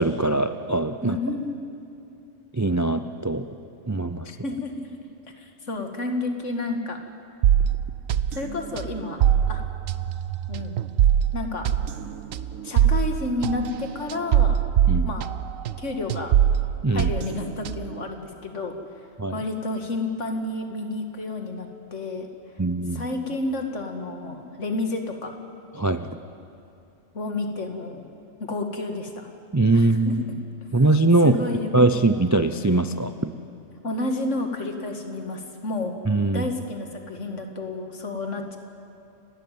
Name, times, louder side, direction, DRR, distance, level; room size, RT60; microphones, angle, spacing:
voice 1, 0.0-1.2 2.5-3.4 3.9-4.4 14.9-15.1 16.8-17.1 19.2-19.4 22.6-23.0 25.8-26.1 29.5-30.2 30.7-31.4 31.7-33.2 36.1-36.5, right 2 dB, 25° right, 10 dB, 0.3 m, -21 dB
voice 2, 1.0-1.7 4.4-4.9 5.4-7.0 8.3-9.6 10.5-10.8 11.3-11.7 12.6-14.6 15.1-15.3 15.8-16.4 16.9-18.8 19.3-22.3 22.9-25.3 27.1-28.1 28.4-29.3 29.7-30.2 31.2-32.0 33.8-35.9 36.3-38.6, left 2 dB, 65° left, 5 dB, 2.3 m, -30 dB
sound 1, 7.4-15.8 16.1-18.0, right 10 dB, 80° right, 1.1 m, -23 dB
29.5 x 12.5 x 9.3 m, 2.7 s
omnidirectional pair, 1.4 m